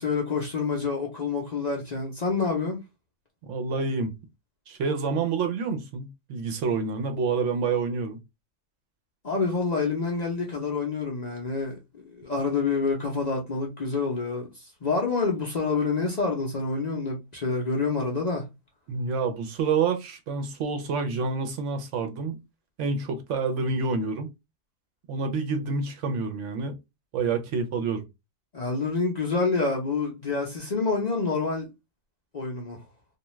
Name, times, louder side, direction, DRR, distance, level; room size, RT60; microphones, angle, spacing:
voice 1, 0.0-2.8 9.2-18.5 28.5-31.7 32.3-32.8, left 4 dB, 45° left, 0.6 m, -27 dB
voice 2, 3.4-4.1 4.7-8.2 18.9-22.4 22.8-24.3 25.1-26.8 27.1-28.0, right 4 dB, 70° right, 0.9 m, -28 dB
2.5 x 2.3 x 3.0 m
omnidirectional pair, 1.3 m